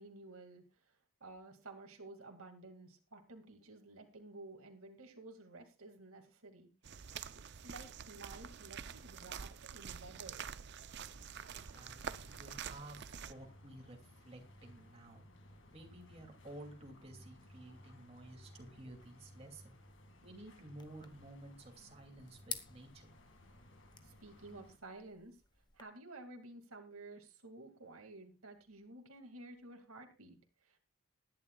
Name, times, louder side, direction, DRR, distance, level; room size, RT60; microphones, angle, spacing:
voice 1, 0.0-7.0 7.5-10.5 24.0-25.4 25.7-30.8, right 2 dB, 85° right, 4 dB, 2.2 m, -53 dB
sound 1, 6.8-13.3, right 7 dB, 50° right, 0.5 m, -47 dB
sound 2, 11.0-24.8, left 1 dB, 60° left, 2.1 m, -60 dB
voice 2, 11.7-13.0 13.2-15.3 15.7-19.8 20.2-23.1, right 1 dB, 30° right, 1 dB, 2.5 m, -53 dB
sound 3, 20.8-25.8, left 6 dB, 20° left, 1.0 m, -51 dB
20.0 x 10.5 x 2.3 m, 0.30 s
head